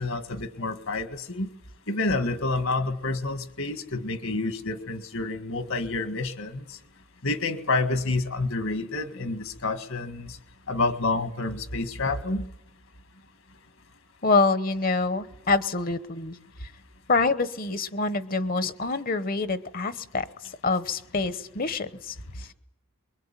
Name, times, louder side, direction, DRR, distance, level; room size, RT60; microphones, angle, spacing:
voice 1, 0.0-1.5 1.9-6.8 7.2-10.4 10.7-12.5, left 3 dB, 65° left, 10 dB, 1.9 m, -28 dB
voice 2, 14.2-16.7 17.1-22.5, left 3 dB, 40° left, 14 dB, 1.0 m, -26 dB
24.0 x 22.5 x 9.0 m, 0.81 s
head